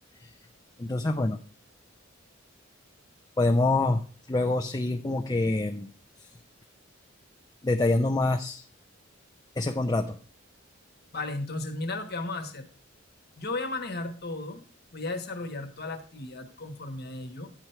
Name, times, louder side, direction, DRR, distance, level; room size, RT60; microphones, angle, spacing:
voice 1, 0.8-1.4 3.4-4.0 4.3-5.9 7.6-8.6 9.6-10.2, left 2 dB, 20° left, 3 dB, 0.5 m, -25 dB
voice 2, 11.1-12.7 13.4-17.5, left 2 dB, 55° left, 7 dB, 1.2 m, -35 dB
9.7 x 4.5 x 5.6 m, 0.40 s
head